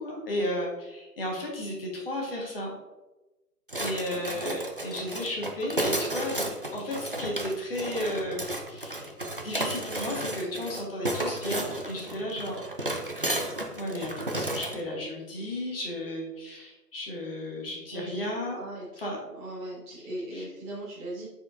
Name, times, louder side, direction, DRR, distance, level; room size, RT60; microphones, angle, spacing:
voice 1, 0.0-2.7 3.8-6.5 6.7-8.4 8.7-9.1 9.4-12.6 13.7-18.6 19.0-19.2 20.3-20.4, left 1 dB, 35° left, -2 dB, 1.4 m, -33 dB
sound 1, 3.7-14.8, right 1 dB, 35° right, 0.4 m, -33 dB
voice 2, 18.5-19.0 19.3-21.3, right 1 dB, 15° right, -9 dB, 1.6 m, -39 dB
8.5 x 4.6 x 2.6 m, 1.1 s
figure-of-eight pair, 140°, 48 cm